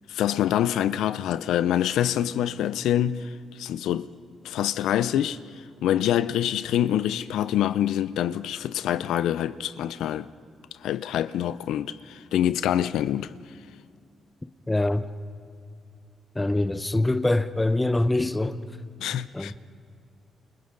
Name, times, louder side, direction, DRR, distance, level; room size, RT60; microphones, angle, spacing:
voice 1, 0.1-4.1 4.4-5.4 5.8-10.3 10.8-13.4 19.0-19.5, left 11 dB, 85° left, 0.5 m, -25 dB
voice 2, 14.7-15.1 16.3-18.6 19.3-19.5, left 2 dB, 15° left, 1.0 m, -24 dB
29.0 x 28.5 x 3.9 m
cardioid pair, 75°, 0 cm